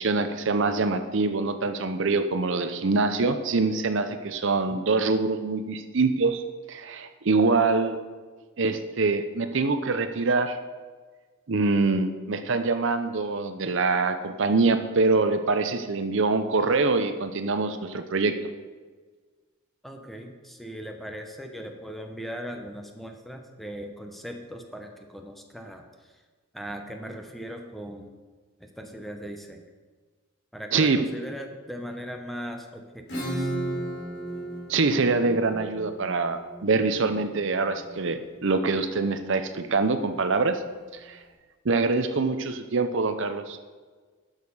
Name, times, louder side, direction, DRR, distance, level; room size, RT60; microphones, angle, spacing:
voice 1, 0.0-6.4 6.7-8.0 8.6-10.6 11.5-18.3 30.7-31.1 34.7-40.6 41.1-41.2 41.6-43.6, right 3 dB, 60° right, 9 dB, 0.7 m, -24 dB
voice 2, 4.7-5.1 19.8-26.2 26.5-28.2 28.6-29.6 30.5-33.6, equal, ahead, 4 dB, 0.8 m, -39 dB
Acoustic guitar / Strum, 33.1-38.5, right 1 dB, 55° left, 3.2 m, -35 dB
11.5 x 6.5 x 5.5 m, 1.4 s
head